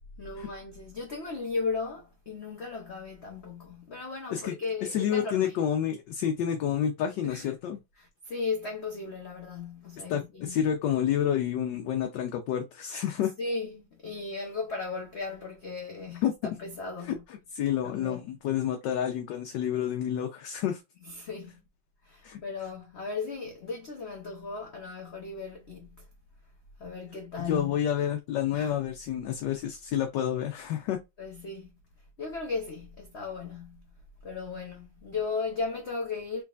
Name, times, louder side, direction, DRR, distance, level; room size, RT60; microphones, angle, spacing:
voice 1, 0.2-5.6 7.2-7.5 8.0-10.6 13.4-17.2 17.8-18.3 21.0-21.6 22.0-26.1 26.8-27.8 28.5-28.8 31.2-31.7 32.2-33.9 34.2-36.4, left 4 dB, 90° left, 0.5 m, -36 dB
voice 2, 4.9-7.8 10.1-13.3 16.2-16.3 17.1-17.2 17.5-20.8 22.2-22.4 27.5-31.0, left 9 dB, 70° left, 1.2 m, -29 dB
3.5 x 3.1 x 2.3 m
omnidirectional pair, 2.2 m